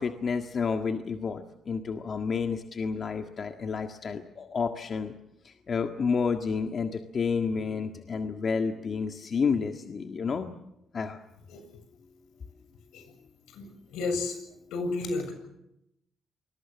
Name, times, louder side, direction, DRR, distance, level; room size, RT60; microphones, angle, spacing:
voice 1, 0.0-5.1 5.4-10.5 10.9-11.2, left 5 dB, 45° left, 5 dB, 1.7 m, -30 dB
voice 2, 13.5-14.4 14.7-15.3, left 3 dB, 85° left, 7 dB, 7.0 m, -32 dB
28.5 x 21.5 x 7.4 m, 0.82 s
cardioid pair, 90°, 0 cm